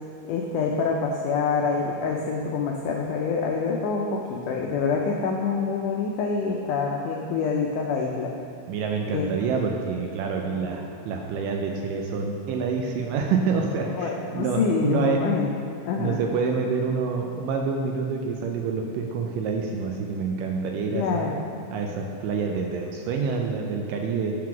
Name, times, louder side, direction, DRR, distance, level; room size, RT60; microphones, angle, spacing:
voice 1, 0.3-8.3 9.1-9.3 10.5-10.6 14.0-15.5 15.8-16.2 20.9-21.4, left 5 dB, 85° left, 0 dB, 1.7 m, -26 dB
voice 2, 8.7-15.2 16.0-21.3 21.7-24.4, right 5 dB, 80° right, 1 dB, 2.0 m, -27 dB
7.4 x 3.8 x 5.9 m, 2.4 s
omnidirectional pair, 4.2 m